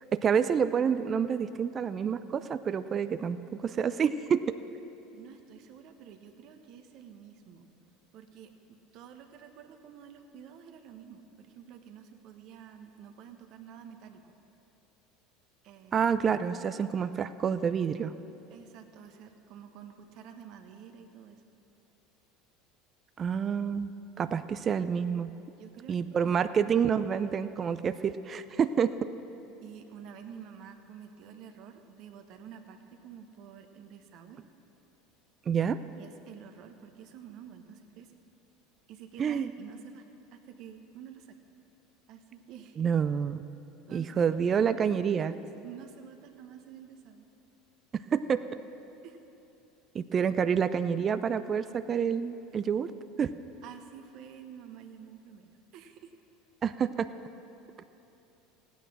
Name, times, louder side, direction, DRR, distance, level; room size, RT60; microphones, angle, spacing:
voice 1, 0.1-3.4 3.6-4.5 15.9-18.1 23.2-23.9 24.2-25.3 25.9-28.9 35.5-35.8 39.2-39.5 42.8-43.4 43.9-45.3 47.9-48.5 49.9-52.9 53.2-53.3 56.6-57.1, right 7 dB, 35° right, 12 dB, 0.5 m, -28 dB
voice 2, 5.1-7.6 8.1-14.2 15.6-16.0 18.5-21.4 25.5-26.4 28.6-28.7 29.6-34.4 35.9-38.2 38.9-41.4 42.1-42.9 43.9-47.3 49.0-49.2 53.6-56.1, right 8 dB, 55° right, 6 dB, 1.2 m, -49 dB
16.5 x 9.2 x 6.3 m, 2.9 s
hypercardioid pair, 80°, 0 cm